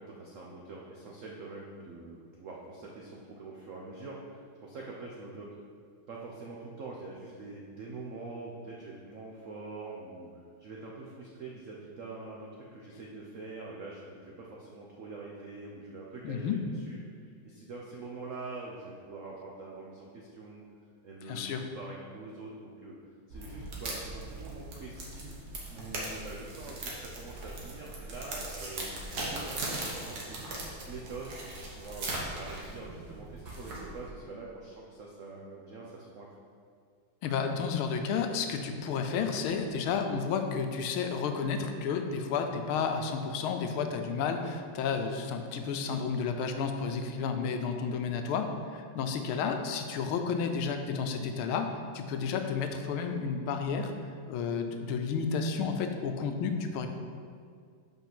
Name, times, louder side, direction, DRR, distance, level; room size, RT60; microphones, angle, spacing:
voice 1, 0.0-4.3 4.6-5.5 6.1-10.3 10.6-20.6 21.0-23.0 23.3-25.4 25.7-30.4 30.9-36.3, right 3 dB, 80° right, -2 dB, 0.7 m, -44 dB
voice 2, 16.2-16.6 21.3-21.6 37.2-53.9 54.3-56.9, left 5 dB, 85° left, 6 dB, 1.5 m, -31 dB
sound 1, 23.3-34.1, right 2 dB, 55° right, 1.6 m, -39 dB
5.4 x 4.9 x 6.0 m, 2.1 s
omnidirectional pair, 2.3 m